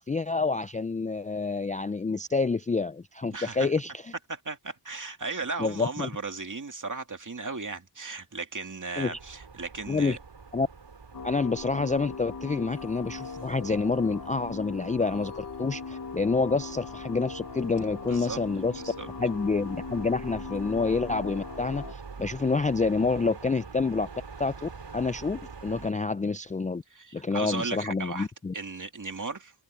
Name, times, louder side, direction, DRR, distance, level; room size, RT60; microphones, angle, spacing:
voice 1, 0.0-4.1 5.6-6.1 9.0-9.2 9.9-10.2 10.5-10.7 11.2-18.8 19.2-24.1 24.4-26.8 27.1-28.5, left 4 dB, 20° left, 0.3 m, -28 dB
voice 2, 3.3-3.7 4.3-10.2 18.1-18.4 18.8-19.1 26.9-28.3 28.5-29.5, right 3 dB, 45° right, 2.5 m, -36 dB
sound 1, 9.1-25.9, right 5 dB, 80° right, 4.4 m, -46 dB
sound 2, 11.1-21.9, left 5 dB, 50° left, 0.9 m, -40 dB
wide cardioid pair, 90°, 42 cm